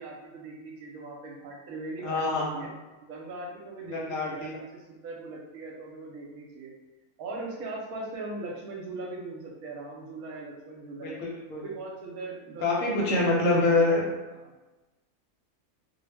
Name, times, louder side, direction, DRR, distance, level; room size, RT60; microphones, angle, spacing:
voice 1, 0.0-2.7 3.0-6.7 7.2-11.2 11.6-13.8 14.3-14.5, right 2 dB, 75° right, -2 dB, 1.1 m, -40 dB
voice 2, 2.0-2.6 3.9-4.5 11.0-11.6 12.6-14.1, left 2 dB, 65° left, -3 dB, 1.0 m, -25 dB
2.6 x 2.0 x 3.3 m, 1.1 s
omnidirectional pair, 1.6 m